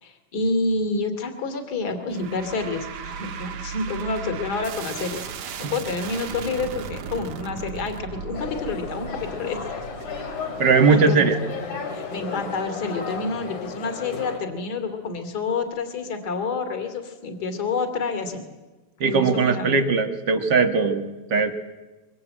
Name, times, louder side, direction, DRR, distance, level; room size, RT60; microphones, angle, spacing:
voice 1, 0.0-9.6 10.9-11.2 11.9-18.4 19.0-19.8, left 3 dB, 30° left, 7 dB, 3.0 m, -28 dB
sound 1, 2.1-13.4, right 6 dB, 65° right, 2.6 m, -37 dB
sound 2, 8.3-14.4, left 5 dB, 65° left, 4.6 m, -34 dB
voice 2, 10.6-11.4 19.0-21.5, right 4 dB, 45° right, 7 dB, 1.5 m, -20 dB
24.0 x 24.0 x 8.8 m, 1.2 s
omnidirectional pair, 3.7 m